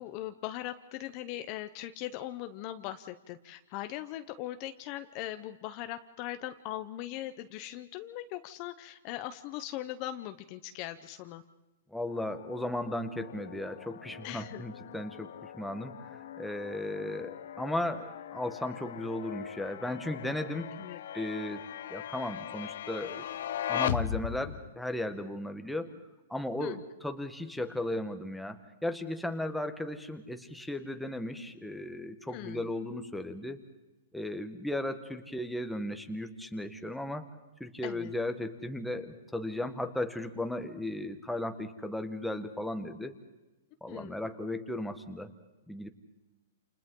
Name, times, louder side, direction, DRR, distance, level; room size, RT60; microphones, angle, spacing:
voice 1, 0.0-11.4 14.2-14.6 20.8-21.0 26.6-26.8 32.3-32.7 37.8-38.1 43.9-44.1, left 14 dB, 30° left, 9 dB, 0.8 m, -40 dB
voice 2, 11.9-20.7 21.1-21.6 21.9-23.3 23.7-25.9 26.3-33.6 34.1-37.3 37.6-43.1 43.8-45.3 45.7-45.9, left 1 dB, ahead, 6 dB, 1.3 m, -36 dB
sound 1, 12.1-24.7, left 10 dB, 65° left, 0.8 m, -39 dB
29.0 x 28.5 x 3.8 m, 1.1 s
hypercardioid pair, 165°, 0 cm